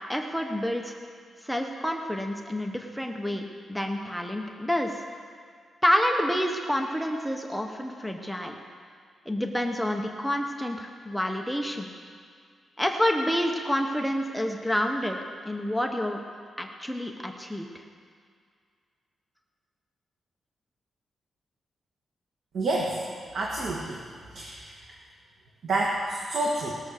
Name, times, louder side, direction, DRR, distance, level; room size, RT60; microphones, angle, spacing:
voice 1, 0.1-1.0 1.4-4.9 5.8-8.5 9.3-11.9 12.8-15.2 15.4-16.2 16.6-17.7, equal, ahead, 2 dB, 1.0 m, -28 dB
voice 2, 22.5-23.0 23.3-24.0 24.3-24.7 25.6-26.8, right 2 dB, 65° right, -2 dB, 1.6 m, -28 dB
19.5 x 6.9 x 6.5 m, 2.1 s
wide cardioid pair, 135°, 0 cm